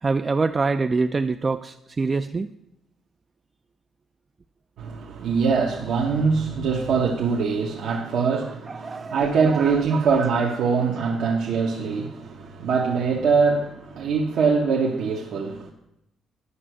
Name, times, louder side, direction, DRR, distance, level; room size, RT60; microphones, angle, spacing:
voice 1, 0.0-2.5 8.7-9.6, right 4 dB, 30° right, 0.3 m, -25 dB
voice 2, 4.8-15.7, right 5 dB, 75° right, 1.0 m, -23 dB
9.8 x 5.7 x 6.2 m
cardioid pair, 90°, 0 cm